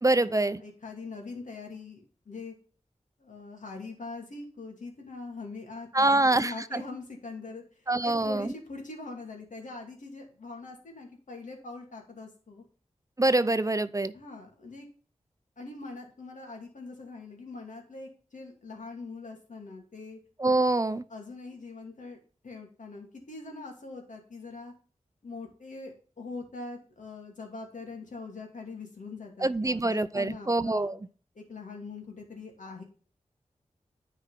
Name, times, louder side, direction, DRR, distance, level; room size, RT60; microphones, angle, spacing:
voice 1, 0.0-0.6 5.9-6.8 7.9-8.5 13.2-14.1 20.4-21.0 29.4-31.0, right 2 dB, 25° right, 0.5 m, -25 dB
voice 2, 0.6-2.5 3.2-7.6 8.0-12.6 14.1-14.9 15.6-20.2 21.1-22.2 22.4-24.7 25.2-30.9 31.3-32.8, left 3 dB, 80° left, 2.6 m, -42 dB
9.7 x 4.8 x 5.8 m
cardioid pair, 45°, 13 cm